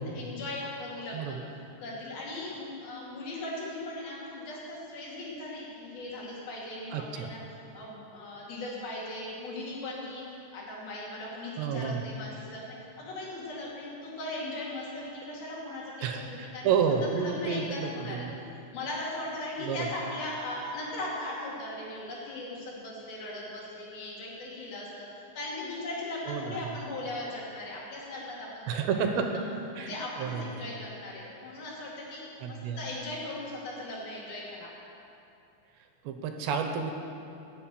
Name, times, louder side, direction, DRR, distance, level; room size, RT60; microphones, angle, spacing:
voice 1, 0.0-1.4 1.8-16.7 17.2-18.3 18.7-24.9 25.3-29.4 29.8-34.7, left 1 dB, 60° left, -4 dB, 4.0 m, -38 dB
voice 2, 6.9-7.3 11.6-12.0 16.0-18.4 19.6-19.9 26.3-26.6 28.7-29.3 29.7-29.9 30.2-30.7 32.4-32.8 36.0-36.9, right 6 dB, 80° right, 5 dB, 3.0 m, -30 dB
12.0 x 8.2 x 8.9 m, 2.7 s
omnidirectional pair, 5.1 m